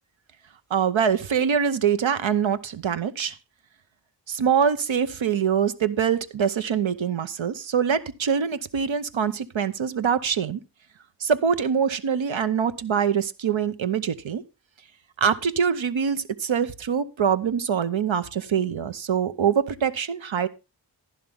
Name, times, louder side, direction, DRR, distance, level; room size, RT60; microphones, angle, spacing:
voice 1, 0.7-3.4 4.3-10.6 11.2-14.4 15.2-20.5, right 7 dB, 85° right, 12 dB, 0.8 m, -24 dB
11.0 x 11.0 x 3.5 m, 0.27 s
wide cardioid pair, 55°, 45 cm